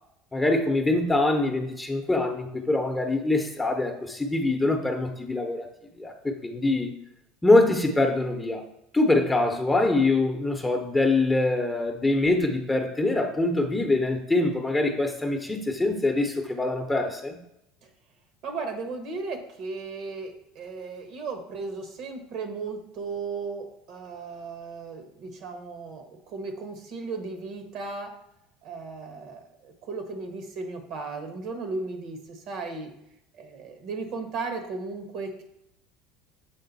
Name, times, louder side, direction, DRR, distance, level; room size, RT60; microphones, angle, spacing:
voice 1, 0.3-5.7 6.0-6.9 7.4-8.6 8.9-17.4, left 2 dB, 10° left, 4 dB, 0.9 m, -24 dB
voice 2, 18.4-28.1 28.6-32.9 33.3-35.4, right 4 dB, 60° right, 6 dB, 1.2 m, -36 dB
7.3 x 3.7 x 4.1 m, 0.80 s
hypercardioid pair, 85°, 0 cm